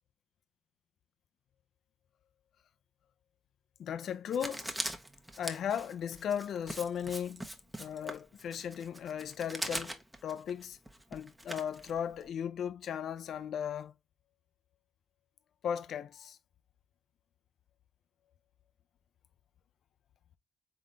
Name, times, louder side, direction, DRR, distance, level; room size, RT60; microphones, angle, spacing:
voice 1, 3.8-4.7 5.4-7.5 7.8-10.8 11.1-13.9 15.6-16.4, left 8 dB, 65° left, 0.5 m, -36 dB
Writing, 4.3-12.3, right 1 dB, 10° right, 1.0 m, -42 dB
3.9 x 3.8 x 3.3 m
supercardioid pair, 60°, 0 cm